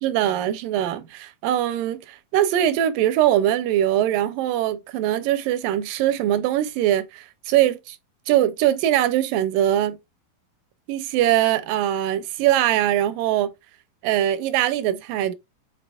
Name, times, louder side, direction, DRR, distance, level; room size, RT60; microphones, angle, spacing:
voice 1, 0.0-8.0 8.3-10.0 10.9-13.5 14.0-15.3, right 12 dB, 80° right, 2.1 m, -22 dB
8.0 x 2.8 x 2.3 m
omnidirectional pair, 4.1 m